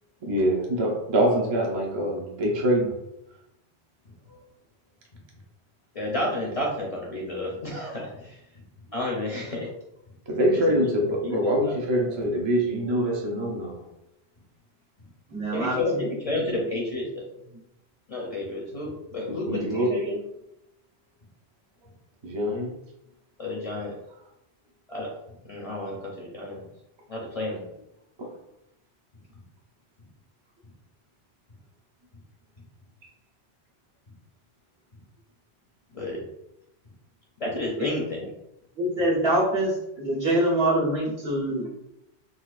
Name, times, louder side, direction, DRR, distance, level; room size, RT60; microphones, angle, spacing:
voice 1, 0.2-3.0 10.3-13.8 19.3-20.0 22.2-22.7 28.2-28.3, equal, 35° right, -1 dB, 0.5 m, -24 dB
voice 2, 5.9-8.4 8.9-9.7 10.5-12.3 15.5-17.2 18.1-20.2 23.4-23.9 24.9-25.2 25.4-26.7 27.1-27.6 35.9-36.3 37.4-38.3, left 1 dB, 40° left, -3 dB, 0.6 m, -31 dB
voice 3, 15.3-15.8 16.3-16.4 37.8-37.9 38.8-41.7, right 1 dB, 70° right, -6 dB, 1.4 m, -24 dB
3.9 x 2.4 x 2.4 m, 0.84 s
omnidirectional pair, 1.1 m